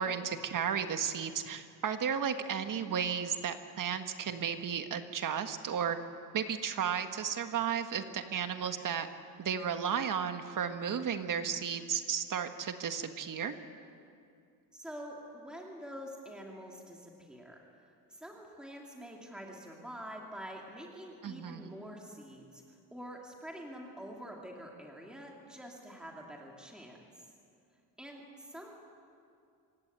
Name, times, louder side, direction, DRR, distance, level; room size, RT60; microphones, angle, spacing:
voice 1, 0.0-6.0 6.3-9.1 9.4-13.5 21.2-21.6, right 7 dB, 55° right, 8 dB, 1.6 m, -34 dB
voice 2, 14.7-17.6 18.1-27.3 28.0-28.8, equal, ahead, -1 dB, 2.6 m, -46 dB
26.0 x 16.0 x 9.3 m, 2.4 s
cardioid pair, 145°, 38 cm